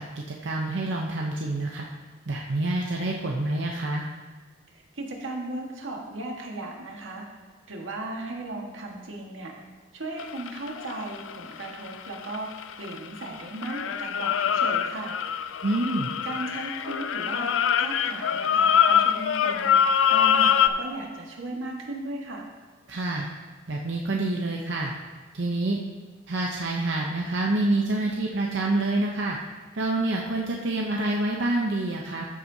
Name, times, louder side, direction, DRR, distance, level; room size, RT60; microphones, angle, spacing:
voice 1, 0.0-1.9 2.3-4.0 15.6-16.1 22.9-23.3 23.7-24.9 25.3-25.8 26.3-29.4 29.7-32.3, right 2 dB, 65° right, -1 dB, 0.7 m, -27 dB
voice 2, 4.7-7.2 7.7-9.5 9.9-12.5 12.8-15.2 16.2-22.5, right 2 dB, 90° right, 0 dB, 1.5 m, -36 dB
sound 1, 10.2-13.3 13.6-20.7, left 8 dB, 85° left, 0.4 m, -24 dB
13.5 x 7.5 x 2.7 m, 1.4 s
head